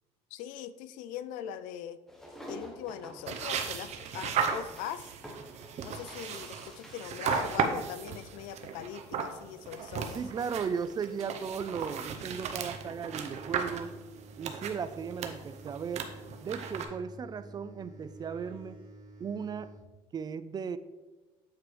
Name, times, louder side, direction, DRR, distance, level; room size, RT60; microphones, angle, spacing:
voice 1, 0.3-2.0 2.5-5.1 5.8-10.2, left 10 dB, 85° left, 14 dB, 0.4 m, -41 dB
sound 1, 2.1-7.5, equal, 5° left, 1.2 m, -49 dB
sound 2, 3.3-16.9, right 6 dB, 55° right, 0.8 m, -36 dB
voice 2, 10.1-13.9 14.4-16.1 16.4-18.8 19.2-19.7 20.1-20.8, right 6 dB, 30° right, 13 dB, 0.3 m, -36 dB
sound 3, 12.2-19.8, right 1 dB, 85° right, 1.8 m, -50 dB
8.3 x 4.5 x 3.2 m, 1.2 s
cardioid pair, 100°, 13 cm